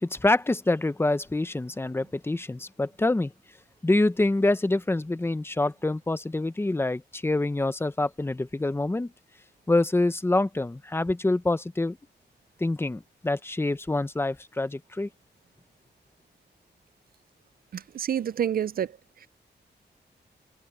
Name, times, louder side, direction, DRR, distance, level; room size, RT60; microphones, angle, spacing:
voice 1, 0.0-3.3 3.8-9.1 9.7-12.0 12.6-15.1, left 2 dB, 15° left, 0.7 m, -26 dB
voice 2, 17.7-18.9, right 9 dB, 55° right, 0.4 m, -28 dB
wide cardioid pair, 140°, 18 cm